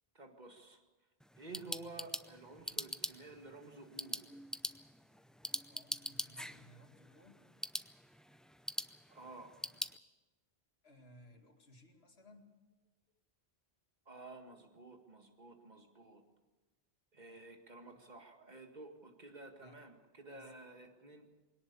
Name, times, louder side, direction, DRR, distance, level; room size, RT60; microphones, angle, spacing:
voice 1, 0.1-0.8 1.4-4.2 9.1-9.5 14.1-16.2 17.1-21.3, right 2 dB, 45° right, 4 dB, 2.1 m, -52 dB
sound 1, 1.2-10.0, equal, ahead, 0.4 m, -44 dB
voice 2, 5.7-7.4 10.8-12.5 17.3-17.5 17.9-18.1 19.6-19.8 20.3-20.5, left 1 dB, 70° left, 3 dB, 2.6 m, -61 dB
21.5 x 18.0 x 7.0 m, 1.2 s
omnidirectional pair, 1.1 m